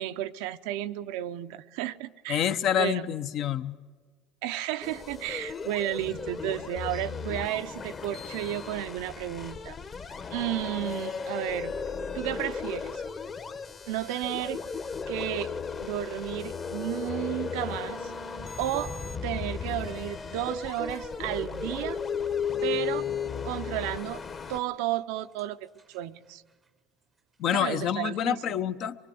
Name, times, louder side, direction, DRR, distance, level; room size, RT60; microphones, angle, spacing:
voice 1, 0.0-2.4 2.8-3.1 4.4-9.8 10.3-11.7 12.1-13.0 13.9-14.6 15.1-15.5 15.8-18.1 18.6-18.9 19.2-22.0 22.6-23.1 23.4-24.2 24.5-25.6 25.9-26.4 27.5-28.6, right 13 dB, 80° right, 0.6 m, -32 dB
voice 2, 2.3-3.8 27.4-29.0, left 9 dB, 55° left, 0.8 m, -27 dB
sound 1, 4.8-24.6, left 6 dB, 35° left, 1.2 m, -35 dB
sound 2, 18.7-22.5 23.6-23.9 24.6-24.7 24.9-25.0 25.4-25.5 25.8-26.0 27.7-27.8, right 2 dB, 20° right, 0.7 m, -43 dB
24.0 x 22.5 x 7.8 m
supercardioid pair, 110°, 0 cm